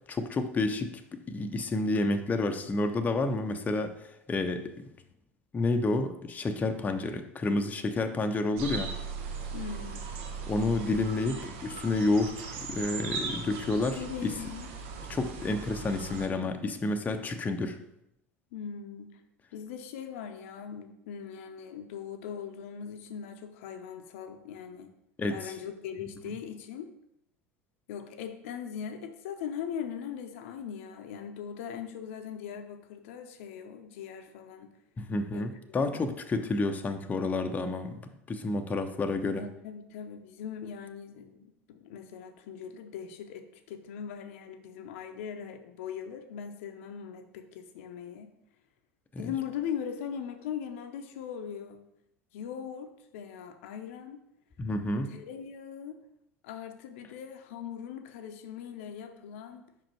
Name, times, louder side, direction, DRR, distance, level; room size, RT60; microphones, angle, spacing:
voice 1, 0.1-4.9 5.5-8.9 10.5-14.3 15.1-17.8 25.2-25.5 35.0-38.0 38.3-39.5 49.1-49.3 54.6-55.1, left 2 dB, 20° left, 6 dB, 0.6 m, -30 dB
sound 1, 8.6-16.3, right 5 dB, 60° right, 0.9 m, -38 dB
voice 2, 9.5-10.0 13.9-14.7 18.5-19.2 19.5-24.9 25.3-26.9 27.9-34.7 35.3-36.1 39.3-48.3 49.2-51.8 52.3-54.2 55.0-56.0 56.4-59.7, left 8 dB, 65° left, 7 dB, 0.6 m, -40 dB
5.3 x 5.0 x 4.5 m, 0.80 s
figure-of-eight pair, 75°, 8 cm